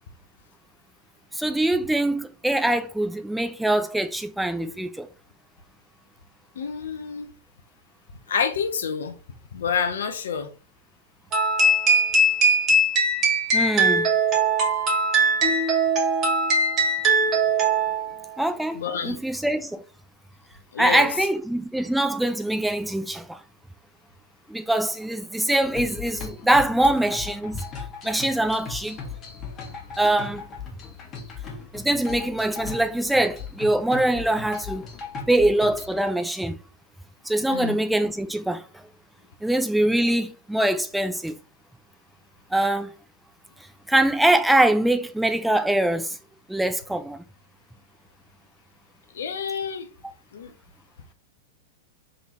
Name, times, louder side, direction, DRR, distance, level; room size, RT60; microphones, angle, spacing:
voice 1, 1.3-5.1 13.5-14.1 18.4-19.8 20.8-23.4 24.5-27.6 28.0-29.0 30.0-30.5 31.7-34.9 35.3-36.6 37.2-38.8 39.4-41.3 42.5-42.9 43.9-46.2 46.5-47.2, right 1 dB, 5° right, 0.4 m, -23 dB
voice 2, 6.6-7.3 8.3-9.1 9.5-10.5 14.0-14.1 18.7-19.2 20.7-21.1 37.5-37.8 49.1-49.9 50.3-50.5, left 6 dB, 70° left, 0.8 m, -28 dB
sound 1, 11.3-18.1, right 2 dB, 30° right, 1.9 m, -21 dB
sound 2, 25.6-36.1, left 5 dB, 30° left, 1.5 m, -38 dB
3.8 x 3.5 x 2.9 m
figure-of-eight pair, 100°, 0 cm